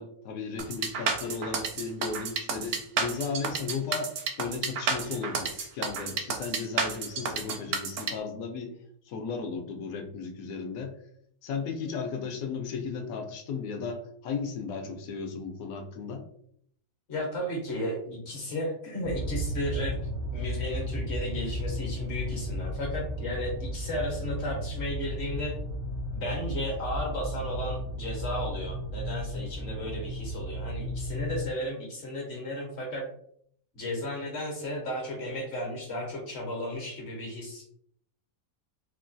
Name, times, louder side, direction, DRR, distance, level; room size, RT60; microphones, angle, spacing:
voice 1, 0.0-4.1 4.4-8.7 9.1-10.9 11.4-16.2, left 5 dB, 75° left, 4 dB, 1.0 m, -35 dB
sound 1, 0.6-8.1, right 5 dB, 65° right, 0.7 m, -30 dB
voice 2, 17.1-19.9 20.3-25.5 26.1-33.0 33.7-37.7, left 1 dB, 55° left, 0 dB, 1.0 m, -34 dB
sound 2, 19.0-31.4, equal, 45° right, 0.4 m, -34 dB
3.0 x 2.2 x 2.5 m, 0.66 s
omnidirectional pair, 1.5 m